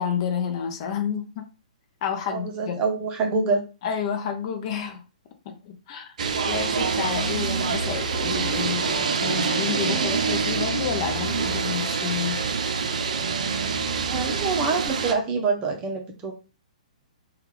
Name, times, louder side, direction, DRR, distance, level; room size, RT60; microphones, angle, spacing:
voice 1, 0.0-1.5 2.0-2.8 3.8-5.0 5.5-6.1 6.5-12.4, left 7 dB, 40° left, 0.5 m, -30 dB
voice 2, 2.3-3.6 14.1-16.3, right 4 dB, 25° right, 0.7 m, -26 dB
sound 1, 6.2-15.1, right 5 dB, 65° right, 0.5 m, -26 dB
3.4 x 2.3 x 3.1 m
figure-of-eight pair, 125°, 4 cm